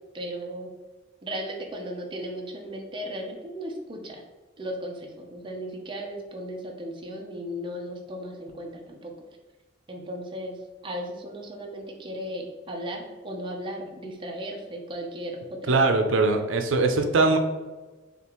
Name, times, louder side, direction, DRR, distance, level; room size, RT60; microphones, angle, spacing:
voice 1, 0.1-0.7 1.2-4.2 4.6-9.1 9.9-15.8, equal, 25° right, 0 dB, 0.6 m, -36 dB
voice 2, 15.7-17.4, right 3 dB, 85° right, 5 dB, 0.5 m, -21 dB
6.6 x 2.4 x 3.0 m, 1.3 s
head